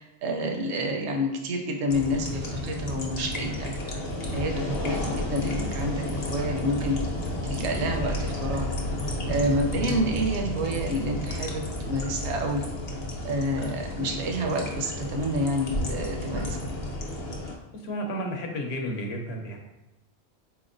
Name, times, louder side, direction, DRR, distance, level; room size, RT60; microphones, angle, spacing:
voice 1, 0.0-4.0 4.3-7.0 7.4-8.7 9.3-12.6 13.2-16.6, equal, 80° right, 3 dB, 0.9 m, -29 dB
sound 1, 1.9-17.5, left 1 dB, 45° left, 0.6 m, -32 dB
voice 2, 17.7-19.6, equal, 70° left, 2 dB, 0.9 m, -32 dB
4.2 x 3.0 x 2.5 m, 1.0 s
omnidirectional pair, 1.1 m